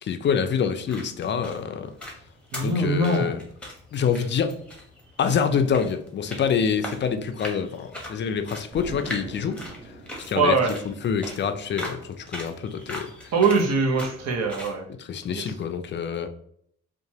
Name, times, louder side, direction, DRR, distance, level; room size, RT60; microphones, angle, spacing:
voice 1, 0.0-1.9 2.6-3.4 3.9-4.5 5.2-9.6 10.3-10.6 10.9-13.1 15.0-16.3, left 6 dB, 40° left, 8 dB, 0.4 m, -26 dB
sound 1, 0.6-14.8, left 1 dB, 5° left, 0.9 m, -41 dB
voice 2, 2.5-3.3 10.4-10.7 13.3-14.8 15.3-15.4, right 3 dB, 60° right, 0 dB, 0.8 m, -22 dB
Explosion, 8.7-11.4, right 2 dB, 30° right, 0.7 m, -42 dB
2.9 x 2.3 x 2.7 m, 0.66 s
cardioid pair, 75°, 30 cm